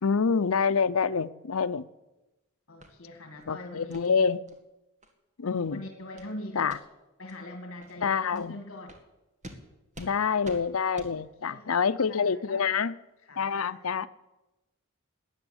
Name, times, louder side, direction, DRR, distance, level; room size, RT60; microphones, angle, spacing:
voice 1, 0.0-1.9 3.5-4.4 5.4-5.8 6.6-6.8 8.0-8.6 10.0-12.9 13.4-14.1, left 6 dB, 90° left, 14 dB, 0.7 m, -27 dB
voice 2, 2.7-4.2 5.7-6.8 7.2-9.0 11.2-12.7 13.2-13.9, left 1 dB, 65° left, 4 dB, 2.0 m, -43 dB
sound 1, 2.8-2.9 3.3-3.5 3.9-4.1 4.5-4.6 5.0-5.1 5.5-5.7 6.2-6.3 6.6-6.8 7.3-7.4 7.8-7.9 8.3-8.5 8.9-9.0 9.4-9.6 9.9-10.1 10.4-10.6 10.9-11.1, equal, 35° right, 2.0 m, -47 dB
13.5 x 9.7 x 9.9 m, 1.0 s
head